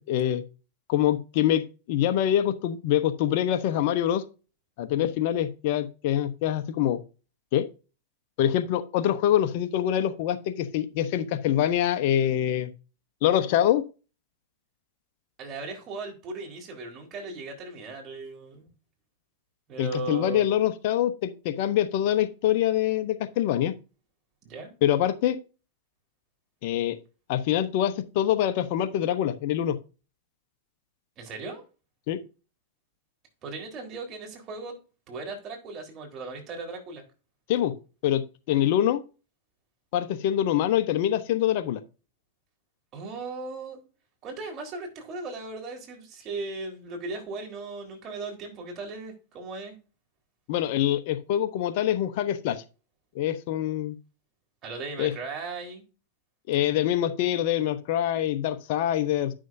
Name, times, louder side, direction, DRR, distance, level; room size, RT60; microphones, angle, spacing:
voice 1, 0.1-0.4 0.9-4.2 4.8-7.0 7.5-7.7 8.4-12.7 13.2-13.8 19.8-23.7 24.8-25.4 26.6-27.0 27.3-29.8 32.1-32.2 37.5-37.7 38.0-39.0 39.9-41.8 50.5-52.6 53.1-53.9 55.0-55.1 56.5-59.3, left 11 dB, 60° left, 10 dB, 0.9 m, -25 dB
voice 2, 15.4-18.7 19.7-20.5 24.4-24.7 31.2-31.6 33.4-34.8 35.1-37.0 42.9-43.8 44.2-49.8 54.6-55.8, right 3 dB, 35° right, 1 dB, 3.8 m, -37 dB
10.5 x 6.3 x 2.7 m, 0.33 s
hypercardioid pair, 105°, 0 cm